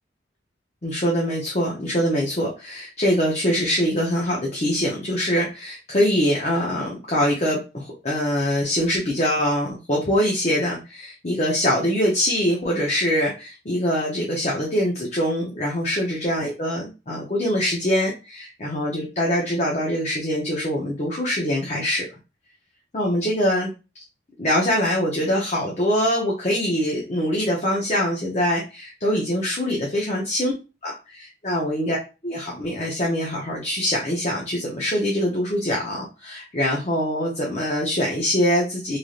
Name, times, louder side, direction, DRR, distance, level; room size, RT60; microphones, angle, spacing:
voice 1, 0.8-22.1 22.9-23.7 24.4-30.5 30.8-32.0 32.2-39.0, equal, 35° left, -2 dB, 0.6 m, -23 dB
3.2 x 2.6 x 2.4 m, 0.30 s
head